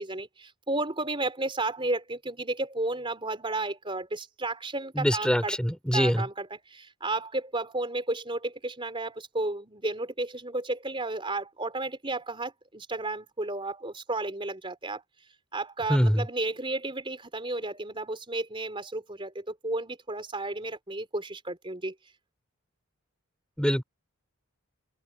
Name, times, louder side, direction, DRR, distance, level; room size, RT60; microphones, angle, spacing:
voice 1, 0.0-5.6 5.9-15.0 15.5-21.9, right 2 dB, 25° right, 4.2 m, -33 dB
voice 2, 5.0-6.3 15.9-16.2 23.6-23.8, equal, 5° left, 3.9 m, -24 dB
head